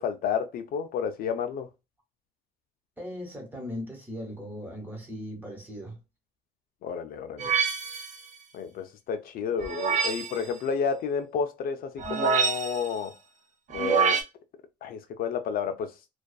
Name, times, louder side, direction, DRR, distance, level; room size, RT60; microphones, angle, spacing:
voice 1, 0.0-1.7 6.8-7.6 8.5-13.1 13.7-14.2 14.8-15.9, left 6 dB, 60° left, 0.4 m, -31 dB
voice 2, 3.0-6.0, equal, 10° right, 1.2 m, -38 dB
sound 1, 7.4-8.2 9.6-10.4 12.0-12.9 13.7-14.2, right 6 dB, 45° right, 0.6 m, -26 dB
2.4 x 2.3 x 2.3 m
cardioid pair, 110°, 17 cm